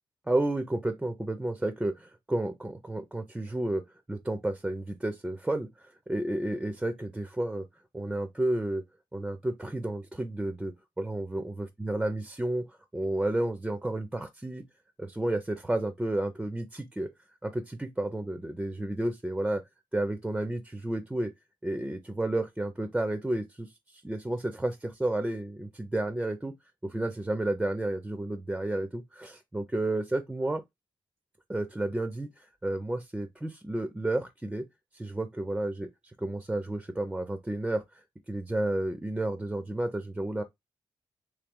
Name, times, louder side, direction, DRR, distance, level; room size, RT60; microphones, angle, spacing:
voice 1, 0.3-7.7 7.9-8.8 9.1-14.6 15.0-17.1 17.4-19.6 19.9-21.3 21.6-26.5 26.8-30.6 31.5-34.7 34.9-40.4, right 1 dB, 10° right, 0.4 m, -31 dB
3.1 x 3.0 x 3.5 m
wide cardioid pair, 140°, 9 cm